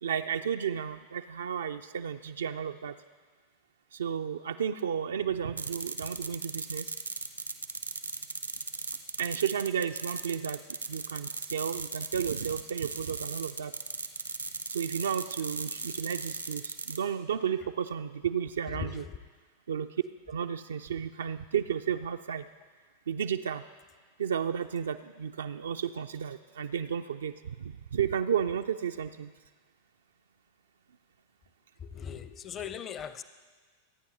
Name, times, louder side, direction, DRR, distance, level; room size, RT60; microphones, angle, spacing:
voice 1, 0.0-2.9 3.9-6.9 9.2-10.6 10.9-13.7 14.7-19.0 19.7-19.9 20.3-22.5 23.1-23.6 24.2-27.3 27.9-29.3, right 8 dB, 65° right, 7 dB, 0.3 m, -32 dB
sound 1, 5.6-17.0, right 4 dB, 85° right, 0.8 m, -37 dB
voice 2, 18.7-19.2 31.8-33.2, left 8 dB, 30° left, 13 dB, 0.6 m, -39 dB
25.5 x 9.4 x 2.8 m, 1.5 s
figure-of-eight pair, 90°, 0 cm